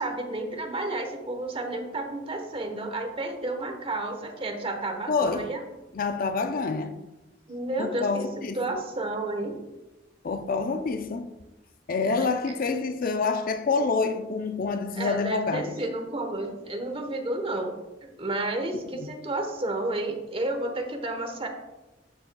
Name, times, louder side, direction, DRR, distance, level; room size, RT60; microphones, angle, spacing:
voice 1, 0.0-5.6 7.5-8.3 8.5-9.6 14.9-21.5, right 2 dB, 30° right, 1.1 m, -31 dB
voice 2, 5.1-5.5 5.9-7.0 7.8-8.6 10.2-11.3 11.9-15.8 18.7-19.1, left 4 dB, 50° left, 0.5 m, -27 dB
12.0 x 6.8 x 2.3 m
head